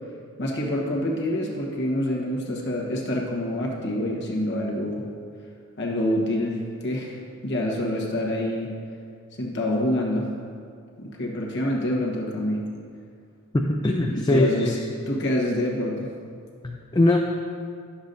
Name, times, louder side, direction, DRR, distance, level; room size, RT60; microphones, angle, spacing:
voice 1, 0.4-5.0 5.8-7.2 7.4-8.7 9.4-10.3 11.0-12.6 14.1-14.8 15.1-16.1, left 1 dB, 50° left, -2 dB, 1.2 m, -26 dB
voice 2, 13.5-14.7 16.6-17.2, left 1 dB, 20° left, 1 dB, 0.4 m, -21 dB
11.5 x 7.0 x 2.6 m, 2.2 s
head